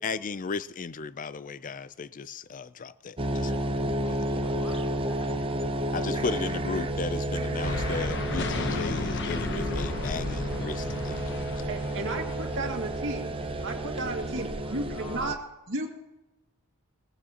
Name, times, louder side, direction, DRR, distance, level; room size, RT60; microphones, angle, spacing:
voice 1, 0.0-3.7 4.1-4.2 5.9-11.5, left 4 dB, 35° left, 0.5 m, -35 dB
sound 1, 3.2-15.3, right 1 dB, 25° right, 0.7 m, -31 dB
voice 2, 4.0-5.5 14.3-15.4, left 2 dB, 90° left, 1.8 m, -46 dB
sound 2, 7.6-14.6, left 3 dB, 55° left, 1.0 m, -35 dB
voice 3, 11.7-13.3 13.6-15.4 15.7-15.9, right 2 dB, 60° right, 2.2 m, -33 dB
21.0 x 17.5 x 2.9 m
head